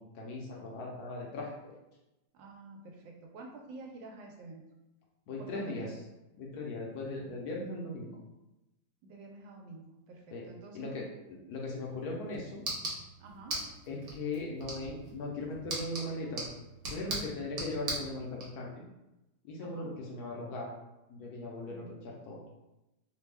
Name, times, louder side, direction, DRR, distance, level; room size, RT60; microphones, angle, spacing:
voice 1, 0.0-1.7 5.3-5.9 6.4-8.1 10.3-10.4 10.7-11.0 11.5-12.6 13.9-16.4 16.9-18.8 19.4-20.7 21.1-22.4, left 2 dB, 70° left, -2 dB, 1.0 m, -38 dB
voice 2, 2.3-4.6 5.4-5.9 9.0-11.1 13.2-13.6 19.6-19.9 21.6-22.0, right 2 dB, 85° right, 1 dB, 1.3 m, -49 dB
sound 1, 11.8-18.5, right 2 dB, 60° right, 1.3 m, -40 dB
3.3 x 2.1 x 3.3 m, 0.96 s
omnidirectional pair, 2.0 m